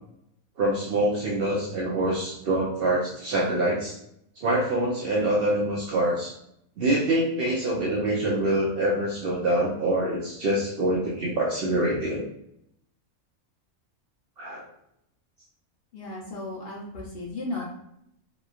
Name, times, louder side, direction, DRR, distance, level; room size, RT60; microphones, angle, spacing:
voice 1, 0.6-4.0 4.4-6.3 6.8-12.2 14.4-14.6, right 1 dB, 60° right, -3 dB, 0.6 m, -25 dB
voice 2, 15.9-17.6, left 2 dB, 55° left, -3 dB, 0.7 m, -35 dB
2.9 x 2.3 x 2.3 m, 0.75 s
omnidirectional pair, 1.4 m